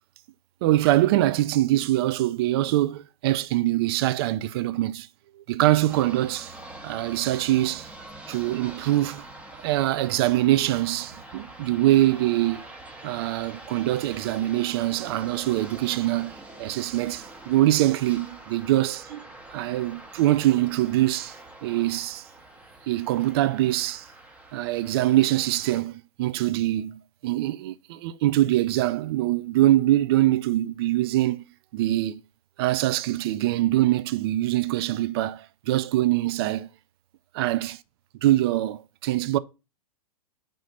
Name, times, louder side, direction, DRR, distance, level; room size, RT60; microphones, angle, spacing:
voice 1, 0.6-5.1 5.4-6.5 6.8-7.9 8.3-9.3 9.6-12.6 13.0-19.3 19.5-21.3 21.6-22.3 22.9-24.0 24.5-31.4 31.7-32.2 32.6-36.7 37.3-37.8 38.2-39.4, right 15 dB, 40° right, 0.4 m, -23 dB
sound 1, 5.9-25.8, right 2 dB, 5° right, 0.8 m, -45 dB
5.1 x 3.8 x 5.3 m
figure-of-eight pair, 105°, 19 cm